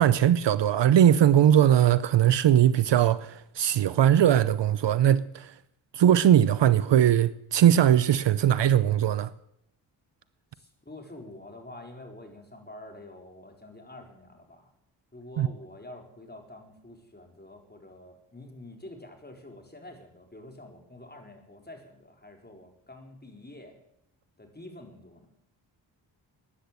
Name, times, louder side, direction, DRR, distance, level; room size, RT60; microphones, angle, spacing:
voice 1, 0.0-5.5 5.9-9.3 15.4-15.5, right 10 dB, 60° right, 0.7 m, -20 dB
voice 2, 10.5-14.7 15.1-23.7 24.4-25.3, left 1 dB, 20° left, 4.3 m, -47 dB
13.5 x 10.0 x 8.3 m
supercardioid pair, 45°, 49 cm